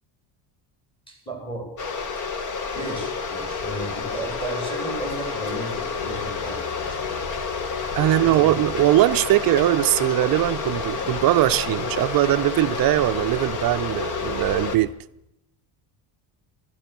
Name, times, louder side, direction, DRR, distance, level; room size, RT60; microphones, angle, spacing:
voice 1, 1.1-1.7 2.7-7.3 8.0-8.6, right 1 dB, 10° left, 3.3 m, -34 dB
sound 1, 1.8-14.8, left 5 dB, 40° left, 1.2 m, -29 dB
Engine / Mechanisms, 5.9-14.9, left 4 dB, 65° left, 2.2 m, -40 dB
voice 2, 7.9-14.9, right 16 dB, 50° right, 0.5 m, -21 dB
13.5 x 13.5 x 5.9 m
cardioid pair, 155°, 47 cm